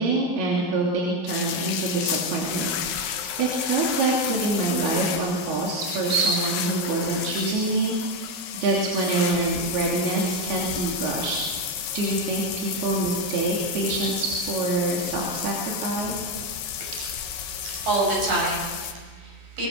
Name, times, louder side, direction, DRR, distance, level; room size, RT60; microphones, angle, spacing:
voice 1, 0.0-11.4 11.9-16.3, right 2 dB, 75° right, -3 dB, 5.0 m, -26 dB
sound 1, 1.3-18.9, left 9 dB, 90° left, 3.4 m, -32 dB
voice 2, 17.4-19.7, right 2 dB, 55° right, -3 dB, 7.8 m, -27 dB
25.0 x 20.5 x 6.7 m, 1.4 s
omnidirectional pair, 4.6 m